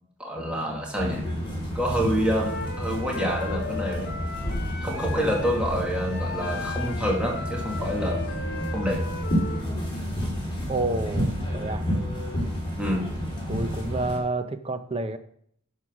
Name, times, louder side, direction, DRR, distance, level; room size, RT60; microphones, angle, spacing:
voice 1, 0.2-1.2 1.7-4.1 4.8-8.2 8.7-9.1 12.8-13.2, equal, 5° right, -2 dB, 2.1 m, -27 dB
sound 1, 1.0-14.2, equal, 20° left, 3.8 m, -30 dB
Wind instrument woodwind instrument, 2.2-9.6, left 3 dB, 50° left, 1.2 m, -37 dB
voice 2, 10.7-11.8 13.5-15.2, right 2 dB, 25° right, 9 dB, 0.8 m, -29 dB
11.0 x 5.6 x 6.2 m, 0.66 s
head